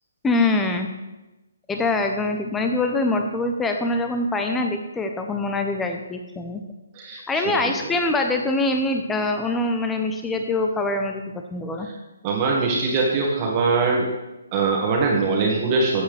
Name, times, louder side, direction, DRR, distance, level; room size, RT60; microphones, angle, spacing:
voice 1, 0.2-0.9 1.7-6.6 7.3-11.9, left 2 dB, 10° left, 4 dB, 0.8 m, -24 dB
voice 2, 6.9-7.4 12.2-14.1 14.5-16.0, right 4 dB, 30° right, -1 dB, 1.8 m, -22 dB
12.5 x 8.2 x 3.5 m, 1.0 s
figure-of-eight pair, 140°, 0 cm